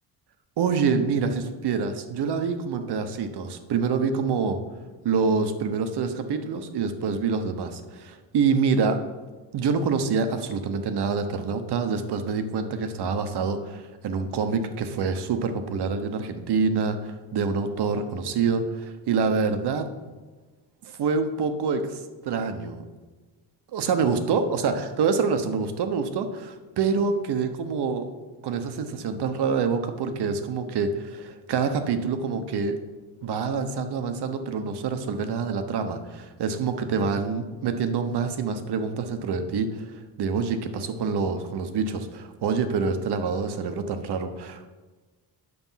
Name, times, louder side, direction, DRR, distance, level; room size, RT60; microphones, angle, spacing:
voice 1, 0.6-4.6 5.0-9.0 9.5-19.9 20.8-22.8 23.7-28.1 28.4-32.8 33.2-44.7, right 5 dB, 60° right, 8 dB, 1.1 m, -26 dB
9.6 x 6.8 x 5.7 m, 1.3 s
cardioid pair, 130°, 44 cm